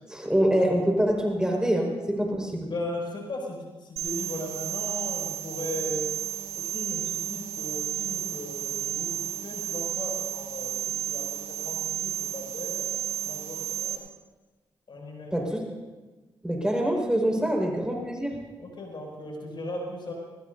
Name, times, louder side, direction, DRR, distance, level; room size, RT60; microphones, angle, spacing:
voice 1, 0.1-2.7 15.3-15.6 16.4-18.4, equal, 10° right, 0 dB, 5.1 m, -25 dB
voice 2, 2.7-6.0 6.5-14.0 14.9-15.4 17.3-17.5 18.6-20.1, left 1 dB, 55° left, -1 dB, 6.5 m, -37 dB
sound 1, 4.0-14.0, right 11 dB, 75° right, 2.7 m, -32 dB
21.5 x 21.0 x 2.7 m, 1.2 s
supercardioid pair, 45°, 10 cm